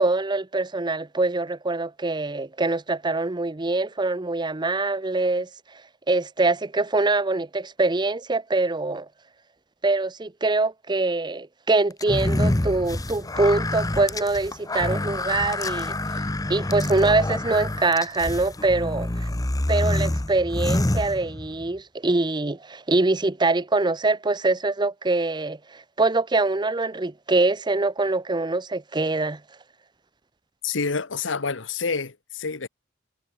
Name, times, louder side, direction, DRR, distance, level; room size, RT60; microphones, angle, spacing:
voice 1, 0.0-5.8 6.1-9.1 9.8-16.2 16.5-19.3 19.7-29.4, right 3 dB, 25° right, 0.8 m, -24 dB
sound 1, 12.0-21.7, left 1 dB, 20° left, 0.9 m, -27 dB
voice 2, 30.6-32.7, left 5 dB, 80° left, 1.2 m, -28 dB
head